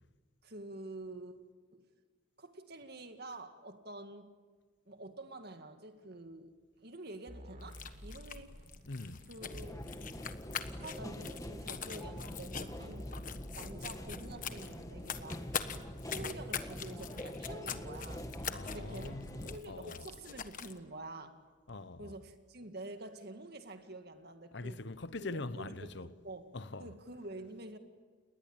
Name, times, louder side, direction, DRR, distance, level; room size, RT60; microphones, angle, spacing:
voice 1, 0.4-1.4 1.7-1.8 2.4-4.3 4.9-6.5 6.8-8.6 9.3-10.0 10.6-13.1 13.6-15.6 16.0-18.3 18.6-21.4 22.0-24.8 25.3-27.8, right 2 dB, 50° right, 2.2 m, -48 dB
sound 1, 7.3-10.0 11.0-11.1 11.9-12.0 12.4-15.3 16.2-16.3 17.2-17.3 17.7-17.8 17.9-20.7 21.7-21.8, equal, 35° right, 4.2 m, -52 dB
sound 2, 7.6-20.8, left 7 dB, 40° left, 1.3 m, -44 dB
voice 2, 8.9-9.2 18.5-20.1 21.7-22.2 24.5-26.1 26.5-26.9, left 2 dB, 60° left, 1.0 m, -43 dB
sound 3, 9.4-19.6, equal, 15° left, 1.5 m, -45 dB
30.0 x 21.0 x 8.9 m
head